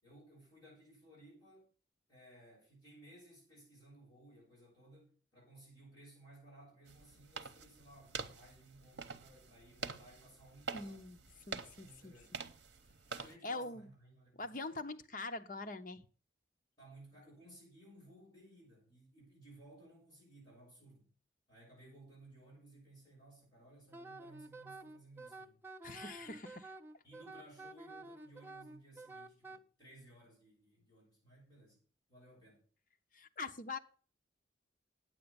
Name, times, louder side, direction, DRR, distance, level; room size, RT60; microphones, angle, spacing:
voice 1, 0.0-1.7 2.1-11.0 11.7-12.3 13.1-14.6 16.8-21.1 21.5-25.6 26.1-26.4 27.0-31.8 32.1-32.7, right 1 dB, 20° left, 6.9 m, -59 dB
sound 1, 6.9-13.3, right 5 dB, 70° right, 0.9 m, -47 dB
voice 2, 10.7-11.2 11.5-12.1 13.4-13.8 14.4-16.0 25.8-26.7 33.1-33.8, left 3 dB, 45° left, 0.7 m, -43 dB
Wind instrument woodwind instrument, 23.9-29.6, right 2 dB, 10° right, 0.4 m, -50 dB
9.3 x 7.9 x 6.9 m
head